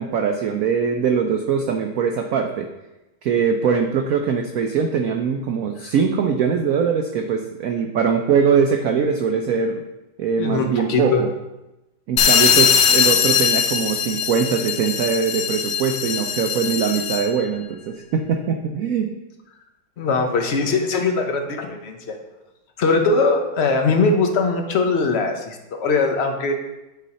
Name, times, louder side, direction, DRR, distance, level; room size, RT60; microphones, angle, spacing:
voice 1, 0.0-2.7 3.2-9.8 10.2-11.3 12.1-19.1, right 6 dB, 90° right, 5 dB, 0.7 m, -22 dB
voice 2, 10.4-11.2 20.0-22.2 22.8-26.5, left 3 dB, 55° left, 4 dB, 0.7 m, -21 dB
sound 1, 12.2-17.4, left 8 dB, 70° left, 1.3 m, -20 dB
9.1 x 4.2 x 4.2 m, 0.98 s
omnidirectional pair, 2.1 m